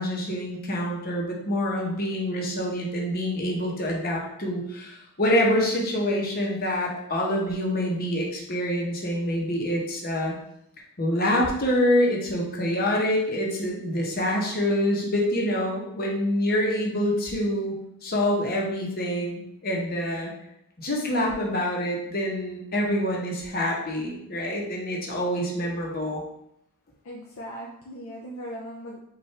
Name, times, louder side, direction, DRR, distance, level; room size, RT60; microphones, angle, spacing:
voice 1, 0.0-10.3 11.0-17.7 18.0-20.3 20.8-26.2, left 1 dB, 40° left, -1 dB, 0.9 m, -26 dB
voice 2, 27.0-29.0, equal, 60° left, -3 dB, 0.6 m, -38 dB
5.5 x 2.5 x 3.3 m, 0.77 s
head